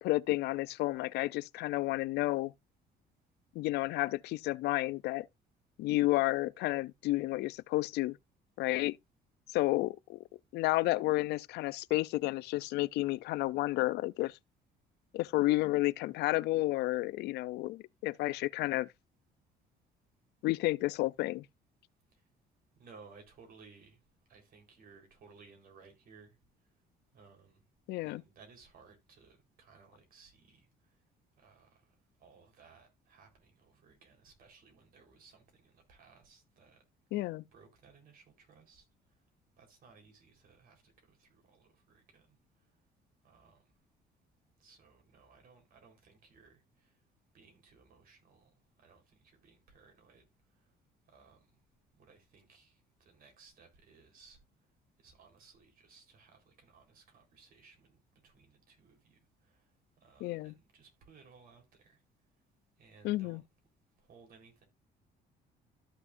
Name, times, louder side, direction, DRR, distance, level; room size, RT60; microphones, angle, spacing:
voice 1, 0.0-2.5 3.6-5.3 5.8-8.2 8.6-9.0 9.5-10.2 10.5-14.4 15.1-18.9 20.4-21.5 27.9-28.2 37.1-37.4 60.2-60.5 63.0-63.4, left 18 dB, 80° left, 0.4 m, -31 dB
voice 2, 22.8-24.0 24.3-26.4 27.1-27.6 28.0-30.9 31.4-36.8 37.5-38.8 39.6-42.4 43.2-43.6 44.6-47.0 47.3-48.5 48.8-50.3 50.5-50.7 51.1-51.5 52.0-54.4 55.0-59.7 60.0-62.0 62.8-63.4 64.0-64.6, right 5 dB, 60° right, 3.8 m, -60 dB
13.5 x 6.1 x 2.5 m
cardioid pair, 110°, 17 cm